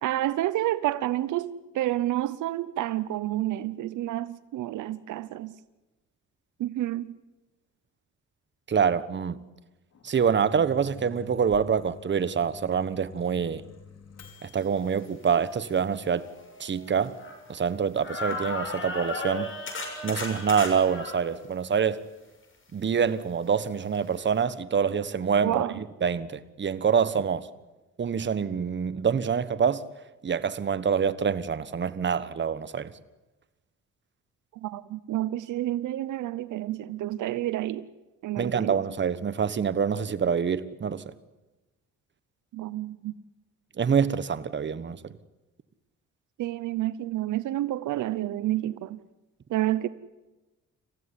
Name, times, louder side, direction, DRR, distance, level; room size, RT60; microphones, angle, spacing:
voice 1, 0.0-5.5 6.6-7.1 25.4-25.8 34.5-37.8 38.2-38.8 42.5-43.2 46.4-49.0 49.5-49.9, right 14 dB, 80° right, 0.8 m, -29 dB
voice 2, 8.7-9.4 10.0-13.6 14.4-16.3 16.6-17.2 17.5-19.5 20.0-22.0 22.7-25.7 26.0-27.5 28.0-29.8 30.2-32.9 38.4-41.1 43.8-45.1, right 7 dB, 40° right, 1.2 m, -26 dB
Microwave oven, 9.9-14.7, left 5 dB, 55° left, 5.0 m, -48 dB
sound 1, 15.3-15.4 16.0-17.7 18.0-21.2 23.9-24.0 24.4-24.5, left 2 dB, 40° left, 6.9 m, -35 dB
27.5 x 15.5 x 9.8 m
cardioid pair, 90°, 30 cm